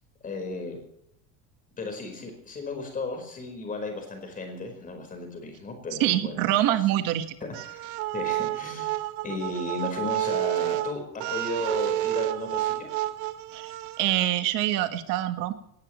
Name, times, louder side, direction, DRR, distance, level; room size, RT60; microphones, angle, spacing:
voice 1, 0.2-0.8 1.8-6.5 7.4-12.9, left 3 dB, 20° left, 4 dB, 4.7 m, -35 dB
voice 2, 6.0-7.3 13.5-13.7 14.0-15.5, right 13 dB, 45° right, 9 dB, 1.7 m, -25 dB
sound 1, 7.5-14.2, right 15 dB, 75° right, 1.6 m, -30 dB
22.5 x 18.5 x 3.2 m, 0.75 s
cardioid pair, 175°, 45 cm